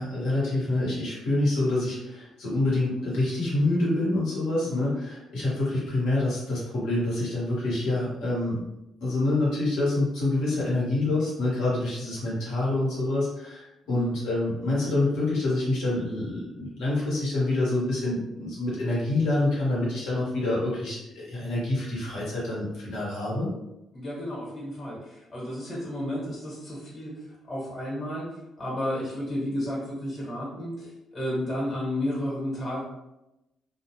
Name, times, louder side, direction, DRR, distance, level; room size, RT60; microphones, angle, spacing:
voice 1, 0.0-8.6 9.0-23.5, left 2 dB, 90° left, -7 dB, 1.1 m, -27 dB
voice 2, 4.6-5.0 13.9-14.2 22.4-22.6 23.9-32.8, left 1 dB, 40° left, -5 dB, 1.0 m, -32 dB
2.3 x 2.1 x 2.9 m, 0.92 s
cardioid pair, 90°, 0 cm